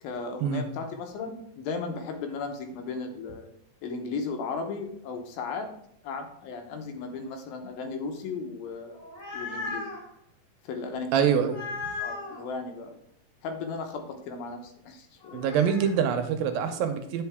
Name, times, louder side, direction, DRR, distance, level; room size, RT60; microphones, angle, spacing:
voice 1, 0.0-3.5 3.8-5.7 6.0-9.0 9.3-9.9 10.6-11.3 12.0-13.0 13.4-15.4, left 4 dB, 85° left, 5 dB, 2.7 m, -35 dB
sound 1, 8.9-10.0 11.4-12.4 15.2-15.9, left 3 dB, 65° left, 4.1 m, -36 dB
voice 2, 11.1-11.7 15.3-17.2, right 7 dB, 85° right, 7 dB, 2.5 m, -25 dB
9.3 x 5.1 x 3.5 m, 0.70 s
omnidirectional pair, 4.2 m